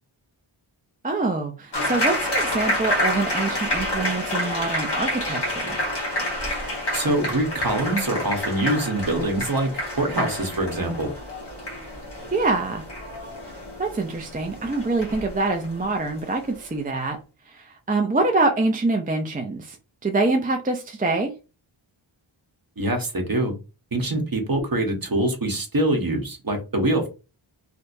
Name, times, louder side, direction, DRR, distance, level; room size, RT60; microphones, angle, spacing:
voice 1, 1.0-5.8 12.3-12.8 13.8-17.2 17.5-19.8 20.0-21.3, right 3 dB, 20° right, 0.5 m, -25 dB
sound 1, 1.7-16.7, left 1 dB, 55° left, 1.6 m, -29 dB
voice 2, 6.9-9.7 10.0-11.1 22.8-23.5 23.9-27.1, right 1 dB, 45° right, 1.1 m, -24 dB
3.3 x 2.8 x 2.6 m
wide cardioid pair, 75°, 48 cm